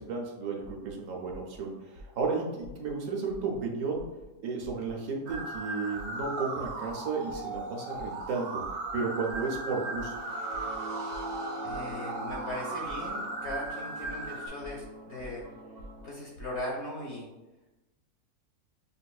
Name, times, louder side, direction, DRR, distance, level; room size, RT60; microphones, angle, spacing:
voice 1, 0.0-4.1 4.4-8.6 8.9-10.2, right 4 dB, 65° right, 0 dB, 1.0 m, -33 dB
sound 1, 0.6-0.9 1.3-1.6 1.9-2.3 2.6-2.9 3.3-3.6 3.9-4.2 4.6-4.9 5.3-5.6 5.9-6.3 6.6-6.9 7.3-7.6 7.9-8.2 8.6-8.9 9.3-9.6 9.9-10.2 10.5-10.8 11.1-11.4 11.7-11.9 12.3-12.5 12.8-13.1 13.4-13.7 14.0-14.3 14.6-14.9 15.2-15.4 15.8-16.0 16.3-16.6, equal, 90° left, 1.3 m, -48 dB
sound 2, 5.3-14.5, right 3 dB, 85° right, 1.1 m, -37 dB
sound 3, 10.1-16.1, equal, 35° right, 0.7 m, -44 dB
voice 2, 11.6-15.5 16.0-17.3, left 1 dB, 60° left, -2 dB, 0.8 m, -39 dB
5.2 x 2.5 x 2.3 m, 1.0 s
omnidirectional pair, 1.6 m